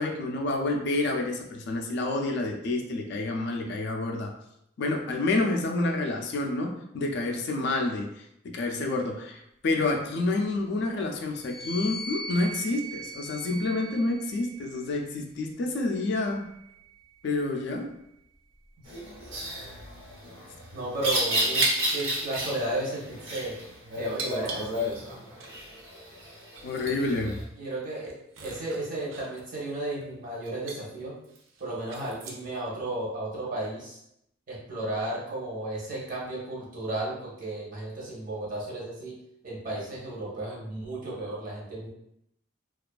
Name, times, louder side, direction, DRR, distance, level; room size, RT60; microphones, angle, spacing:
voice 1, 0.0-4.3 4.8-8.1 8.4-16.4 17.2-17.9 26.6-27.4, left 2 dB, 60° left, 3 dB, 0.3 m, -28 dB
sound 1, 11.3-14.9 15.8-17.4, right 1 dB, 5° left, 0.5 m, -41 dB
sound 2, 18.9-27.4, equal, 90° right, 0.8 m, -32 dB
voice 2, 20.7-23.6 24.0-24.8 27.6-31.1 31.6-34.0 34.5-39.1 39.4-41.9, right 1 dB, 45° right, -4 dB, 0.7 m, -34 dB
sound 3, 21.6-22.1 22.4-22.6 23.3-23.5 24.2-25.1 25.4-25.5 26.1-26.2 26.5-27.0 27.4-27.5 27.9-30.1 30.4-30.8 31.2-32.6, right 4 dB, 75° right, 0.4 m, -37 dB
2.4 x 2.3 x 2.2 m, 0.78 s
head